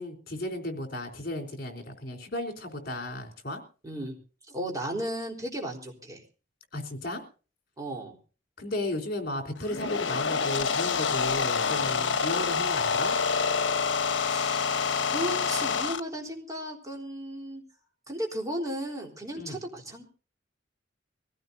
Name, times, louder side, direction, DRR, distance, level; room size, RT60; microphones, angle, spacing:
voice 1, 0.0-3.6 6.7-7.2 8.6-13.2 19.4-19.6, left 1 dB, 55° left, 5 dB, 3.8 m, -34 dB
voice 2, 3.8-4.2 4.5-6.2 7.8-8.2 14.3-14.8 15.1-17.6 18.1-20.0, right 1 dB, 20° right, 1 dB, 4.0 m, -35 dB
sound 1, 9.6-16.0, left 5 dB, 75° left, 1.0 m, -27 dB
24.0 x 16.0 x 2.7 m, 0.37 s
head